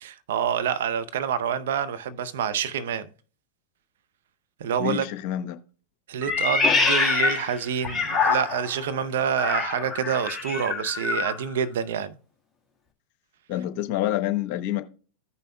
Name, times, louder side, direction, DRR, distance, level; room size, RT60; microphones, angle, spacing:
voice 1, 0.0-3.1 4.6-5.1 6.1-12.2 13.5-13.6, right 8 dB, 70° right, 0.6 m, -27 dB
voice 2, 4.8-5.6 13.5-14.8, left 13 dB, 55° left, 0.9 m, -27 dB
Meow, 6.2-8.8 9.3-11.4, left 4 dB, 5° left, 1.5 m, -25 dB
15.0 x 5.5 x 2.2 m
hypercardioid pair, 95°, 0 cm